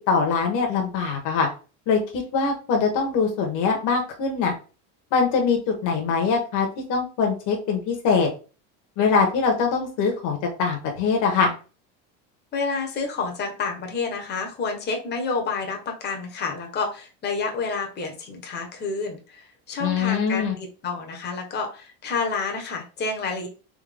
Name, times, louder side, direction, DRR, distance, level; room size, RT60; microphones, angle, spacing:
voice 1, 0.1-1.5 1.9-4.5 5.1-8.3 9.0-11.5 19.8-20.5, left 5 dB, 50° left, 1 dB, 1.2 m, -23 dB
voice 2, 12.5-23.5, left 4 dB, 25° left, 3 dB, 1.0 m, -29 dB
3.7 x 3.0 x 3.4 m, 0.35 s
supercardioid pair, 140°, 40 cm